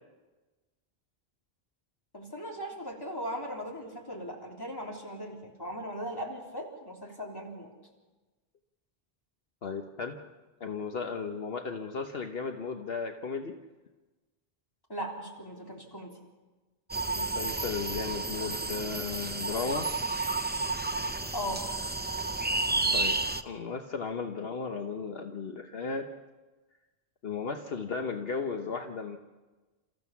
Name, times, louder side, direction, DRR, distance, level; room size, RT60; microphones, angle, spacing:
voice 1, 2.1-7.7 14.9-16.1 21.3-21.6, equal, 20° left, -1 dB, 3.4 m, -38 dB
voice 2, 9.6-10.2 10.6-13.6 17.1-19.9 22.9-23.2 23.4-26.1 27.2-29.2, left 5 dB, 65° left, 5 dB, 1.2 m, -35 dB
sound 1, 16.9-23.4, right 2 dB, 10° right, 0.6 m, -31 dB
29.5 x 14.5 x 7.1 m, 1.2 s
omnidirectional pair, 1.1 m